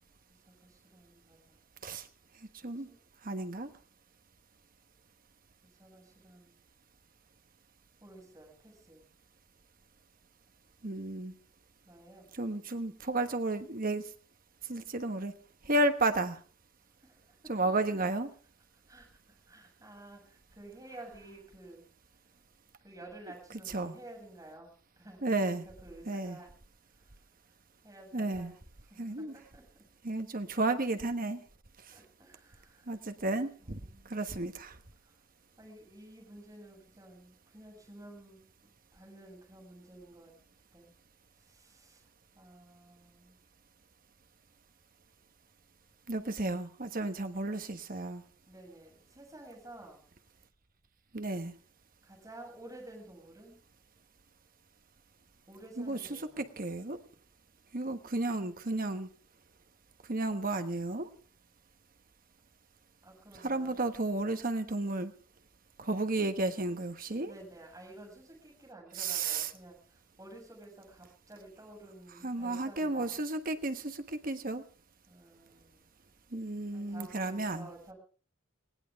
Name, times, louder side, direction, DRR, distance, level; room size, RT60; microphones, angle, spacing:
voice 1, 0.3-1.6 2.8-3.0 5.6-6.5 8.0-9.0 11.8-12.3 17.0-17.8 18.7-21.8 22.8-24.7 25.0-26.5 26.9-27.2 27.8-29.9 31.9-33.0 33.6-34.4 35.0-35.2 35.6-40.3 40.7-40.9 41.3-42.1 42.3-43.4 48.5-50.1 52.0-53.6 55.5-56.5 63.0-63.8 67.2-73.2 75.1-75.8 76.7-77.9, right 1 dB, 15° right, 0 dB, 7.2 m, -52 dB
voice 2, 3.2-3.7 10.8-11.3 12.4-14.1 14.7-15.3 15.6-16.4 17.5-18.3 23.7-23.9 25.2-25.6 26.1-26.4 28.1-28.5 29.0-29.3 30.0-31.4 31.9-32.0 32.9-33.8 34.0-34.8 46.1-48.2 51.1-51.5 55.8-56.0 56.4-57.0 57.7-59.1 60.1-61.1 63.4-65.1 65.8-67.3 69.0-69.5 72.2-74.6 76.3-77.7, right 2 dB, 40° right, 8 dB, 1.2 m, -32 dB
19.5 x 18.0 x 3.6 m, 0.39 s
head